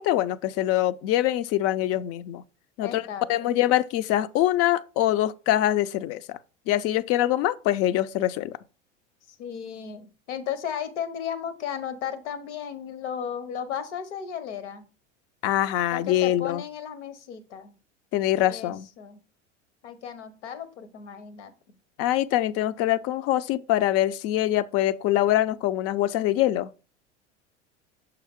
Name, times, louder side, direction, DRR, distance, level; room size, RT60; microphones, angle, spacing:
voice 1, 0.0-2.4 2.8-6.4 6.7-8.5 15.4-16.6 18.1-18.9 22.0-26.7, left 13 dB, 40° left, 0.5 m, -24 dB
voice 2, 2.8-3.5 9.4-14.8 15.9-17.7 18.5-19.2 19.8-21.5, left 8 dB, 70° left, 1.1 m, -35 dB
7.0 x 4.7 x 3.6 m
figure-of-eight pair, 80°, 37 cm